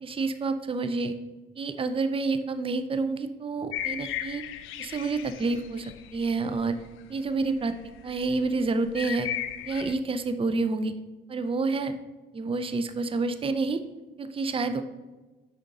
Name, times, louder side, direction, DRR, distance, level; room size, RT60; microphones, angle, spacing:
voice 1, 0.0-1.1 1.6-4.4 4.8-6.8 7.1-7.7 8.0-9.3 9.6-10.9 11.3-11.9 12.3-13.8 14.2-14.8, right 3 dB, 25° right, 9 dB, 0.5 m, -28 dB
sound 1, 3.7-7.2 7.5-9.9, left 11 dB, 85° left, 0.5 m, -36 dB
6.5 x 5.0 x 4.1 m, 1.2 s
cardioid pair, 90°, 20 cm